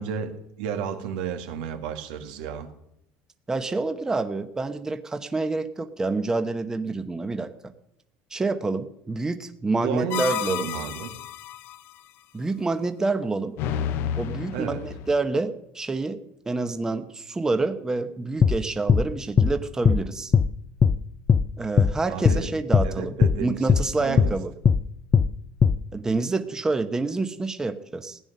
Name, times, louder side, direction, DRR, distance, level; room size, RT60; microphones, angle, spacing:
voice 1, 0.0-2.7 9.8-11.1 14.5-14.8 22.1-22.5 22.8-24.4, right 7 dB, 85° right, 6 dB, 1.8 m, -32 dB
voice 2, 3.5-7.5 8.3-10.7 12.3-13.6 14.2-16.2 16.5-20.3 21.6-23.1 23.4-24.5 25.9-28.2, right 3 dB, 15° right, 9 dB, 0.9 m, -27 dB
sound 1, 10.1-11.8 13.6-15.2, left 9 dB, 60° left, 0.9 m, -31 dB
sound 2, 18.4-18.6 18.9-19.1 19.4-19.5 19.9-20.0 20.3-20.5 20.8-21.0 21.3-21.5 21.8-21.9 22.2-22.4 22.7-22.9 23.2-23.4 23.7-23.9 24.2-24.3 24.7-24.8 25.1-25.3 25.6-25.8, left 6 dB, 25° left, 0.5 m, -18 dB
16.0 x 9.9 x 6.6 m, 0.82 s
cardioid pair, 130°, 4 cm